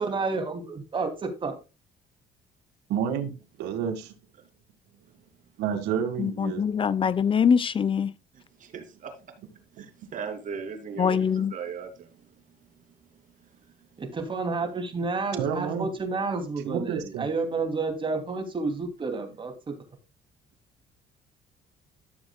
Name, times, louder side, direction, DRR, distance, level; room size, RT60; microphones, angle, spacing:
voice 1, 0.0-1.6 14.0-19.8, right 3 dB, 30° right, 2.7 m, -30 dB
voice 2, 2.9-3.3 3.6-4.1 5.6-6.6 15.3-15.9 16.6-17.3, right 8 dB, 85° right, 1.9 m, -29 dB
voice 3, 6.2-8.1 11.0-11.5, left 7 dB, 30° left, 0.7 m, -23 dB
voice 4, 8.3-9.1 9.7-12.2, right 6 dB, 50° right, 2.7 m, -38 dB
13.5 x 7.1 x 2.3 m
cardioid pair, 110°, 17 cm